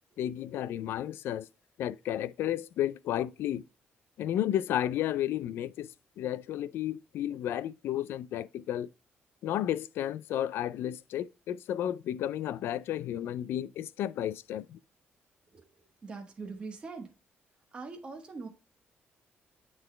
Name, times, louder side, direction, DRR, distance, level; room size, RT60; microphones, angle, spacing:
voice 1, 0.2-1.5 1.8-3.6 4.2-5.9 6.2-8.9 9.4-14.8, left 11 dB, 70° left, 0.3 m, -32 dB
voice 2, 16.0-17.1 17.7-18.5, right 4 dB, 25° right, 1.3 m, -42 dB
9.0 x 3.9 x 3.3 m
cardioid pair, 170°, 4 cm